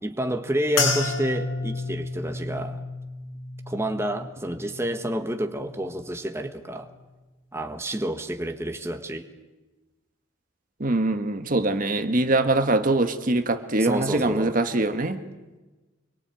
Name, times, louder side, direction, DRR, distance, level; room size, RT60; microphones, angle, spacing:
voice 1, 0.0-2.8 3.7-6.9 7.5-9.3 13.8-14.6, right 1 dB, 15° right, 5 dB, 1.6 m, -29 dB
sound 1, 0.8-5.3 5.6-6.3 6.9-7.1, left 3 dB, 75° left, 7.7 m, -31 dB
voice 2, 10.8-15.2, right 2 dB, 45° right, 8 dB, 1.6 m, -23 dB
26.5 x 23.0 x 9.1 m, 1.2 s
head